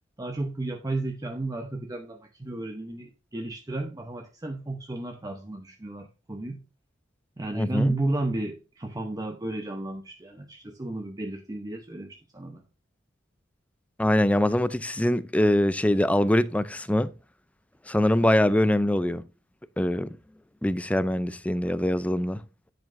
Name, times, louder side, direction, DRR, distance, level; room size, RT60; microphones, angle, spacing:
voice 1, 0.2-6.6 7.4-12.6, right 2 dB, 20° right, 0.8 m, -33 dB
voice 2, 7.6-7.9 14.0-17.1 17.9-19.2 19.8-20.2 20.6-22.4, left 1 dB, 5° left, 0.4 m, -23 dB
9.6 x 7.8 x 2.6 m
head